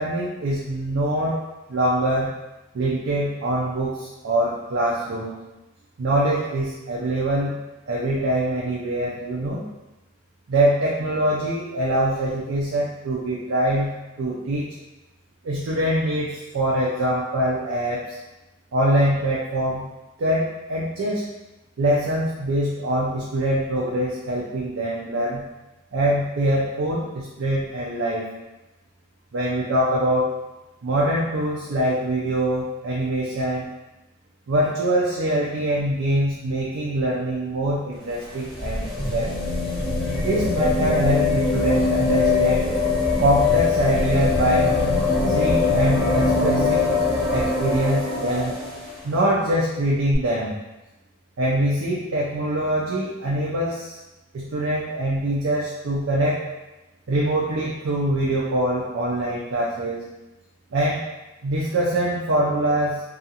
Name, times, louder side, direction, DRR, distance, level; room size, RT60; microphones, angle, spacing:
voice 1, 0.0-1.4 1.7-2.3 2.7-5.3 6.0-7.5 7.9-9.6 10.5-13.9 14.2-14.7 15.4-18.2 18.7-19.9 20.2-21.2 21.8-25.4 25.9-28.3 29.3-30.3 30.8-33.7 34.5-39.3 40.2-42.6 43.2-44.8 45.3-47.0 47.3-48.5 49.0-50.6 51.4-54.0 54.3-56.4 57.1-60.1 60.7-61.0 61.4-63.0, right 1 dB, 90° right, -5 dB, 0.4 m, -23 dB
sound 1, 38.0-48.9 50.1-50.2, left 3 dB, ahead, 0.7 m, -22 dB
2.4 x 2.3 x 2.7 m, 1.0 s
head